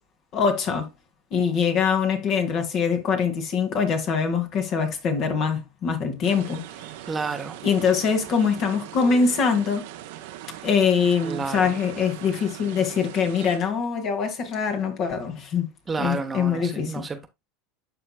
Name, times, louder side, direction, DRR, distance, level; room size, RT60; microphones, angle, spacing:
voice 1, 0.3-0.9 1.3-6.6 7.6-9.8 10.6-15.7 16.0-17.0, left 6 dB, 50° left, 2.0 m, -23 dB
sound 1, 6.2-13.6, right 13 dB, 70° right, 0.9 m, -40 dB
voice 2, 7.1-7.6 11.2-11.7 15.9-17.3, right 4 dB, 20° right, 1.0 m, -30 dB
12.0 x 4.3 x 2.2 m
hypercardioid pair, 90°, 0 cm